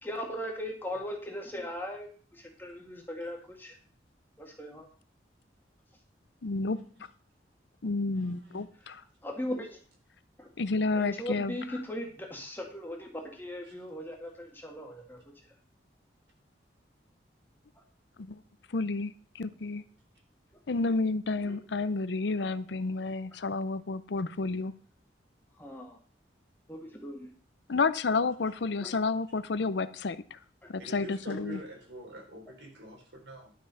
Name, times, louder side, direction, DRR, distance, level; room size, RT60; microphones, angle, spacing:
voice 1, 0.0-3.8 4.4-4.9 9.2-9.8 10.4-10.5 10.9-15.2 21.5-21.6 25.6-26.0 26.7-27.3 28.8-28.9 30.6-30.7, left 1 dB, 10° left, 1 dB, 2.0 m, -38 dB
voice 2, 6.4-6.8 7.8-9.0 10.6-11.6 18.2-18.4 18.7-19.8 20.7-24.7 27.7-30.4 30.7-31.6, left 3 dB, 70° left, 14 dB, 0.6 m, -30 dB
voice 3, 8.1-8.9 13.6-13.7 30.8-33.5, left 1 dB, 80° right, 0 dB, 4.4 m, -46 dB
11.5 x 6.0 x 5.7 m, 0.43 s
head